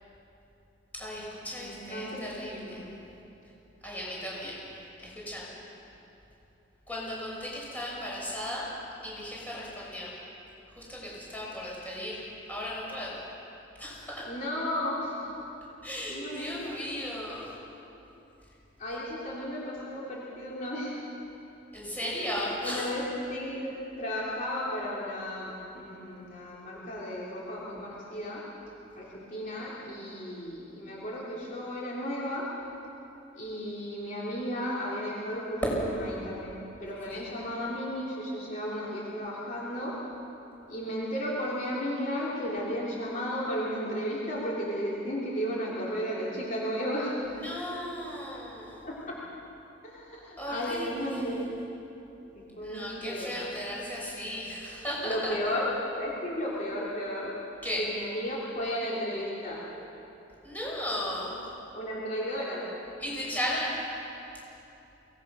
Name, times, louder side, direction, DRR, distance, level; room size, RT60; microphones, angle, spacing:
voice 1, 0.9-2.8 3.8-4.6 5.0-5.5 6.9-8.7 9.0-10.1 10.8-12.2 12.5-13.2 13.8-14.2 15.8-17.5 21.7-22.9 35.6-35.7 37.1-37.2 47.3-48.9 50.4-51.4 52.6-55.5 57.6-57.8 60.4-61.4 63.0-63.8, equal, 10° left, -5 dB, 6.1 m, -36 dB
voice 2, 1.6-2.8 14.3-15.3 16.1-16.8 18.8-21.0 22.0-23.0 23.3-28.4 29.0-32.5 33.3-35.6 36.2-39.9 40.7-47.2 48.8-49.2 49.8-51.5 52.3-53.3 55.0-55.7 56.0-57.3 57.8-59.6 61.7-62.6, equal, 45° left, -6 dB, 3.3 m, -34 dB
23.5 x 18.5 x 6.2 m, 3.0 s
head